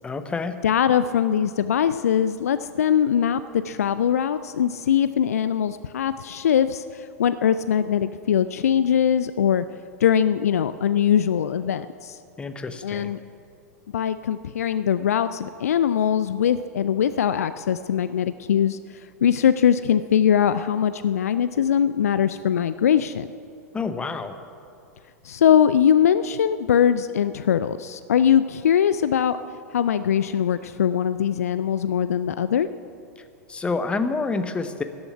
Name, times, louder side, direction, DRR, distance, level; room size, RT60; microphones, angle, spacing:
voice 1, 0.0-0.5 12.4-13.2 23.7-24.4 33.5-34.8, left 4 dB, 10° left, 9 dB, 0.8 m, -28 dB
voice 2, 0.6-9.6 10.0-12.2 12.8-13.2 13.9-18.8 19.2-23.3 25.2-29.4 29.7-32.7, left 9 dB, 65° left, 13 dB, 0.4 m, -21 dB
14.5 x 7.0 x 9.4 m, 2.5 s
figure-of-eight pair, 95°, 9 cm